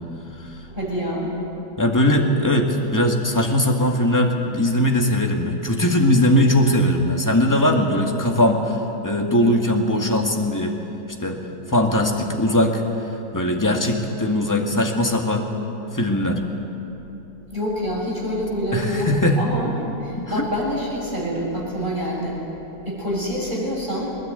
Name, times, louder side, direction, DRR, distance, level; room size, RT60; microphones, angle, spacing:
voice 1, 0.7-1.3 17.5-22.4 22.9-24.2, equal, 25° right, -4 dB, 7.1 m, -26 dB
voice 2, 1.8-10.8 11.2-11.4 11.7-12.8 13.3-15.5 15.9-16.4 18.7-19.4 20.2-20.5, left 1 dB, 10° left, 1 dB, 1.9 m, -20 dB
21.0 x 20.5 x 9.3 m, 3.0 s
omnidirectional pair, 2.0 m